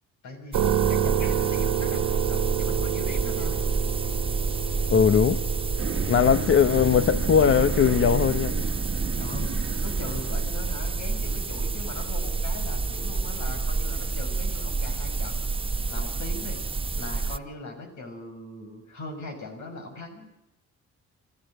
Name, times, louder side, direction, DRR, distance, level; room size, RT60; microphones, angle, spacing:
voice 1, 0.2-3.6 9.2-9.5 9.8-15.4 15.9-16.6 17.0-20.3, left 2 dB, 70° left, 5 dB, 6.4 m, -40 dB
sound 1, 0.5-17.4, right 4 dB, 20° right, 0.9 m, -29 dB
sound 2, 0.5-14.5, right 10 dB, 80° right, 1.7 m, -31 dB
voice 2, 4.9-5.4 6.1-8.5, left 7 dB, 45° left, 12 dB, 0.8 m, -20 dB
sound 3, 5.8-10.8, right 6 dB, 40° right, 1.5 m, -34 dB
26.0 x 14.5 x 7.9 m, 0.88 s
cardioid pair, 90°, 30 cm